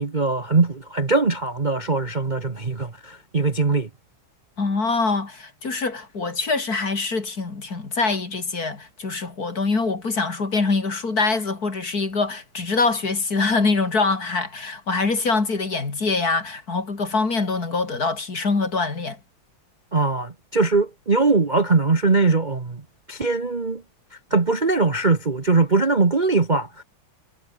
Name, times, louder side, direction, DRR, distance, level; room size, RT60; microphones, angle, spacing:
voice 1, 0.0-3.9 19.9-22.8 23.1-23.8 24.3-26.8, right 3 dB, 25° right, 1.2 m, -21 dB
voice 2, 4.6-19.2, left 3 dB, 45° left, 3.6 m, -24 dB
omnidirectional pair, 2.3 m